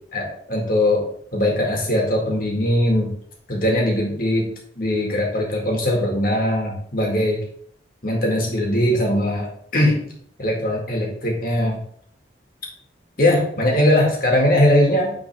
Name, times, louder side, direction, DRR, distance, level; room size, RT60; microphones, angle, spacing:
voice 1, 0.1-3.1 3.5-4.5 4.8-7.4 8.0-10.1 10.4-11.8 13.2-15.1, left 1 dB, 50° left, -1 dB, 2.0 m, -20 dB
9.2 x 4.0 x 3.5 m, 0.63 s
head